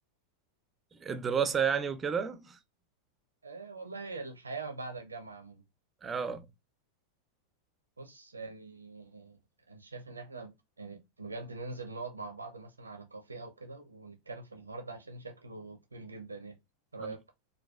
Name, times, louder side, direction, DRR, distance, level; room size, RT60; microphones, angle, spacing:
voice 1, 1.0-2.6 6.0-6.5, right 7 dB, 20° right, 0.4 m, -31 dB
voice 2, 3.4-5.6 8.0-9.4 9.7-16.5 16.9-17.2, right 3 dB, 80° right, 0.5 m, -43 dB
3.9 x 2.3 x 2.3 m
figure-of-eight pair, 90°, 0 cm